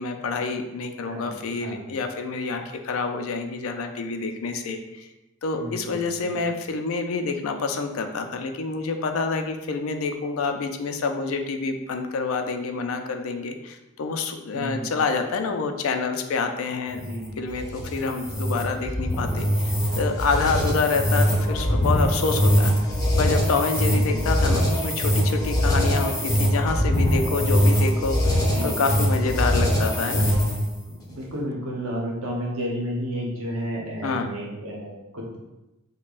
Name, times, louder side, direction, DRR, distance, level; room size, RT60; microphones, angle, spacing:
voice 1, 0.0-5.1 5.4-17.0 17.4-22.7 23.2-28.4 28.6-30.3 34.0-34.3, left 4 dB, 75° left, 6 dB, 0.4 m, -27 dB
voice 2, 5.5-6.4 14.5-14.9 17.0-17.3 23.9-24.2 28.4-28.7 30.9-35.4, equal, 85° right, -2 dB, 0.9 m, -32 dB
sound 1, 16.9-30.7, equal, 15° left, 0.7 m, -22 dB
5.2 x 2.1 x 2.4 m, 0.99 s
head